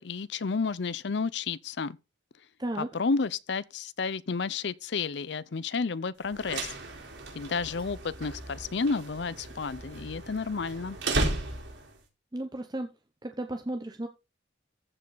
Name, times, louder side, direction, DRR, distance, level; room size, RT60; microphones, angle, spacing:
voice 1, 0.0-2.0 2.8-6.7 7.3-11.0, left 4 dB, 65° left, 0.6 m, -31 dB
Door (open and close), 6.2-12.0, right 2 dB, 75° right, 4.1 m, -35 dB
voice 2, 12.3-12.9 13.2-14.1, right 1 dB, 20° right, 0.8 m, -34 dB
14.5 x 5.4 x 4.0 m
head